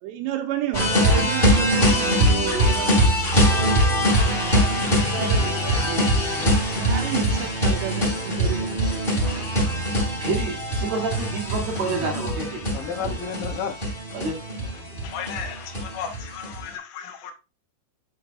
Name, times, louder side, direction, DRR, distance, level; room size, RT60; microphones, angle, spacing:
voice 1, 0.0-3.1 3.4-3.9 4.6-6.2 6.8-9.5, right 11 dB, 80° right, 2.8 m, -32 dB
sound 1, 0.7-16.6, equal, 15° left, 2.2 m, -22 dB
voice 2, 10.2-13.2 14.1-14.4, right 3 dB, 65° right, 1.8 m, -29 dB
voice 3, 12.7-13.8 15.0-17.3, left 7 dB, 75° left, 2.1 m, -33 dB
10.0 x 4.6 x 2.6 m
omnidirectional pair, 5.3 m